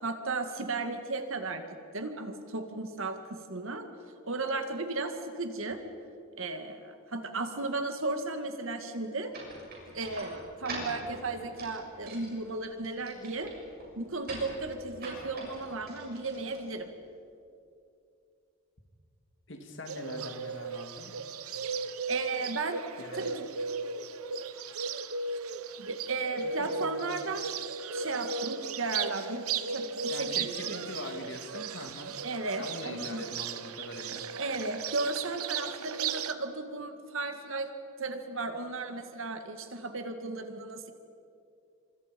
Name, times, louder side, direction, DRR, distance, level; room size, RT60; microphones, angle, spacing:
voice 1, 0.0-1.6 1.9-3.9 4.2-5.8 6.4-9.3 9.9-13.5 14.0-16.9 22.1-23.5 25.8-27.5 27.9-29.5 29.7-30.3 30.7-30.8 32.2-33.3 34.4-37.7 38.0-40.9, right 3 dB, 65° right, 6 dB, 2.1 m, -35 dB
sound 1, 9.3-17.1, right 2 dB, 45° right, 7.0 m, -45 dB
voice 2, 19.5-21.2 23.0-23.3 26.4-27.0 30.1-32.2 32.6-34.2, left 2 dB, 55° left, 4 dB, 2.7 m, -42 dB
Bird, 19.9-36.3, right 5 dB, 85° right, 1.0 m, -36 dB
29.5 x 26.0 x 5.4 m, 2.5 s
head